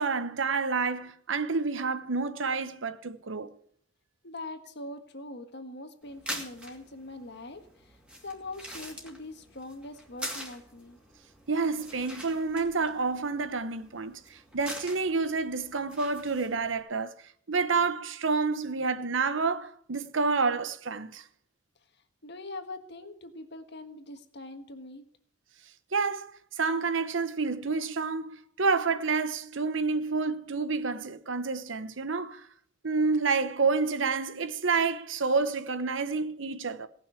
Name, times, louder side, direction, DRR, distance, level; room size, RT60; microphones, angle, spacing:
voice 1, 0.0-3.5 11.5-17.1 17.5-21.2 25.9-32.5 32.8-36.9, right 4 dB, 70° right, 0.9 m, -29 dB
voice 2, 4.2-7.6 8.2-11.0 22.2-25.0, left 2 dB, 60° left, 1.5 m, -42 dB
sound 1, 6.0-16.8, equal, 5° right, 2.6 m, -44 dB
17.5 x 6.2 x 8.3 m
head